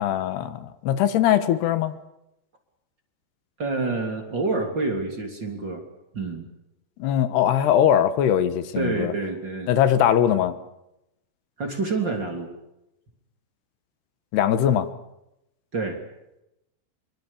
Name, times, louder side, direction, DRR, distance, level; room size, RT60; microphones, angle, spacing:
voice 1, 0.0-1.9 7.0-9.1 9.7-10.6 14.3-14.9, left 10 dB, 85° left, 12 dB, 3.5 m, -21 dB
voice 2, 3.6-5.8 6.1-6.5 8.8-9.7 11.6-12.5 15.7-16.0, right 3 dB, 30° right, 4 dB, 3.5 m, -27 dB
25.0 x 24.0 x 7.3 m, 0.88 s
omnidirectional pair, 4.6 m